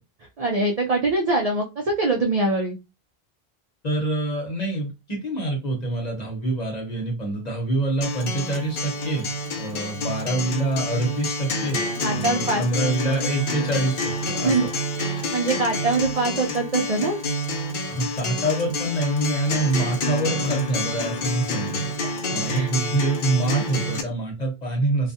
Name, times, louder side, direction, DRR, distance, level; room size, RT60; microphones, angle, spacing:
voice 1, 0.4-2.8 12.0-12.6 14.4-14.7 15.0-17.2 22.5-22.7, right 2 dB, 55° right, 0 dB, 0.4 m, -23 dB
voice 2, 3.8-11.8 12.1-14.5 17.9-21.8 22.3-25.1, right 2 dB, 45° left, 0 dB, 1.0 m, -26 dB
Acoustic guitar, 8.0-24.0, left 1 dB, 60° left, 0.6 m, -28 dB
2.4 x 2.2 x 2.6 m, 0.26 s
omnidirectional pair, 1.1 m